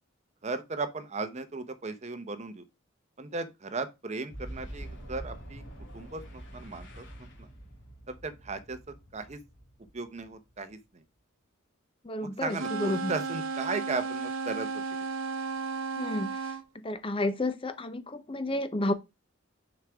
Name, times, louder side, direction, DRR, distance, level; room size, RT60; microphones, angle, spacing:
voice 1, 0.4-2.6 3.2-5.6 5.9-7.1 7.4-7.5 8.1-8.8 9.1-9.4 9.9-10.8 12.4-15.0, right 3 dB, 35° right, 0.8 m, -36 dB
Boom, 4.3-10.8, right 1 dB, 60° left, 2.5 m, -46 dB
voice 2, 12.0-13.1 16.0-16.3 16.8-18.9, left 1 dB, 25° left, 0.7 m, -31 dB
sound 1, 12.5-16.6, right 5 dB, 80° right, 0.8 m, -34 dB
6.3 x 5.1 x 3.5 m
head